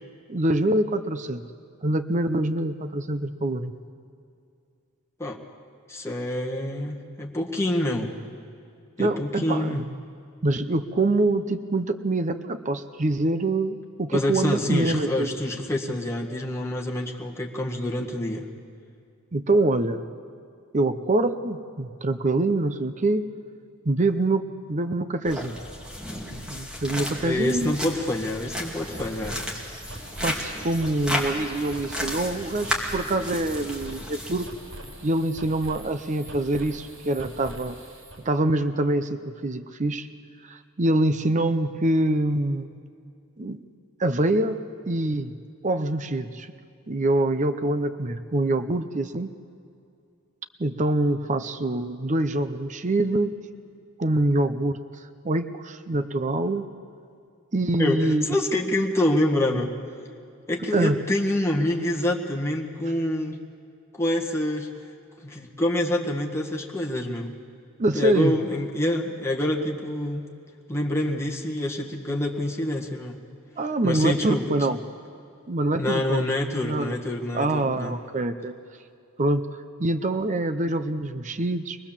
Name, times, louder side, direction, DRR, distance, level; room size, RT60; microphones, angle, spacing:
voice 1, 0.3-1.4 1.8-3.7 9.0-9.8 10.4-15.3 19.3-20.0 20.7-23.3 23.8-25.6 26.5-27.8 30.2-34.5 35.0-37.8 38.2-40.1 40.5-42.7 43.4-43.6 44.0-44.6 44.9-45.4 45.6-46.5 46.9-49.3 50.6-53.3 54.0-54.8 55.2-56.7 57.5-58.4 60.7-61.0 67.8-68.3 73.6-74.8 75.5-76.3 76.6-76.9 77.3-78.6 79.2-79.5 79.8-81.8, right 2 dB, 35° right, 9 dB, 0.7 m, -25 dB
voice 2, 5.9-8.1 9.0-9.8 14.1-18.4 27.2-29.4 57.8-59.8 60.5-63.4 63.9-64.7 65.2-67.4 67.9-70.2 70.7-73.2 73.8-74.5 75.8-78.0, left 1 dB, 15° left, -1 dB, 1.7 m, -26 dB
sound 1, 25.2-34.5, left 1 dB, 5° right, 2.7 m, -33 dB
sound 2, 28.5-38.2, right 1 dB, 90° right, 5.8 m, -43 dB
24.0 x 19.5 x 7.4 m, 2.5 s
head